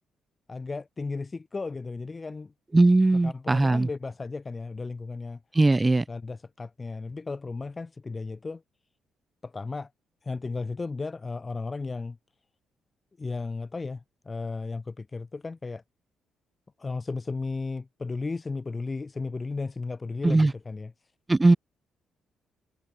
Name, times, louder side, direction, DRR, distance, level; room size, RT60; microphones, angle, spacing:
voice 1, 0.5-2.5 3.1-5.4 6.1-8.6 9.4-9.9 10.2-12.2 13.2-15.8 16.8-20.9, left 3 dB, 25° left, 3.3 m, -34 dB
voice 2, 2.7-3.9 5.6-6.0 20.2-20.5 21.3-21.6, right 2 dB, 20° right, 0.4 m, -19 dB
cardioid pair, 90°, 0 cm